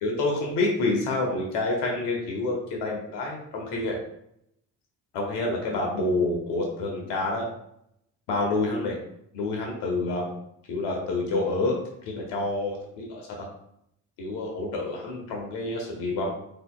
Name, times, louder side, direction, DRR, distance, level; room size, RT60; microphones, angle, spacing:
voice 1, 0.0-4.0 5.1-7.5 8.3-9.0 9.3-10.3 10.7-11.7 12.1-13.5 14.2-16.3, left 2 dB, 65° left, 0 dB, 1.2 m, -28 dB
7.8 x 2.9 x 2.2 m, 0.75 s
hypercardioid pair, 55°, 44 cm